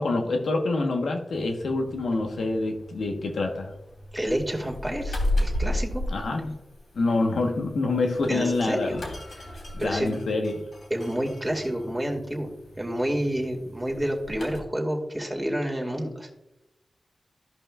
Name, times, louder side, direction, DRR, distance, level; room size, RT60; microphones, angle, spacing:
voice 1, 0.0-3.7 6.1-6.6 6.9-9.0 9.7-10.5, left 2 dB, 85° left, 3 dB, 1.2 m, -26 dB
sound 1, 1.3-14.6, left 1 dB, 70° left, 3.0 m, -35 dB
voice 2, 4.1-6.0 8.3-8.9 9.3-10.2 10.9-12.5 12.8-16.3, right 1 dB, 10° right, 1 dB, 2.2 m, -29 dB
14.0 x 5.4 x 2.4 m, 0.93 s
cardioid pair, 60°, 0 cm